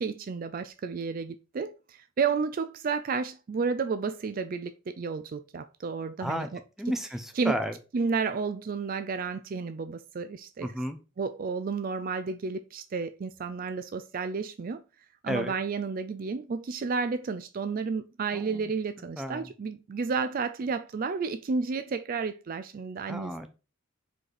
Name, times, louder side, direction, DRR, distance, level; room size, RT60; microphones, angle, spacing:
voice 1, 0.0-6.6 7.4-7.6 7.9-10.7 11.2-14.8 15.2-23.5, right 5 dB, 40° right, 0.3 m, -31 dB
voice 2, 6.8-7.8 10.6-11.0 15.3-15.5 18.3-18.7 19.2-19.5 23.1-23.5, equal, ahead, 0.6 m, -32 dB
4.9 x 4.1 x 4.8 m
head